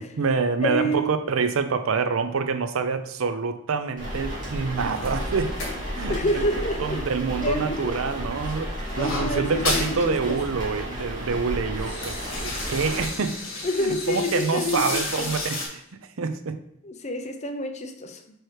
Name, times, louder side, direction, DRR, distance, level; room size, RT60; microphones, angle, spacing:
voice 1, 0.0-5.6 5.9-6.3 6.8-13.4 13.8-15.8 16.2-16.6, right 5 dB, 85° right, 10 dB, 0.5 m, -26 dB
voice 2, 0.6-1.2 6.1-7.0 7.4-7.9 8.9-10.0 10.3-10.4 13.6-15.3 16.8-18.2, left 1 dB, 35° left, 6 dB, 0.6 m, -28 dB
sound 1, 4.0-13.1, equal, 40° right, 2.4 m, -32 dB
sound 2, 4.9-7.5 7.8-10.0 10.3-10.4 10.7-11.1 11.5-15.7, left 3 dB, 70° left, 1.7 m, -33 dB
4.7 x 4.6 x 4.7 m, 0.74 s
head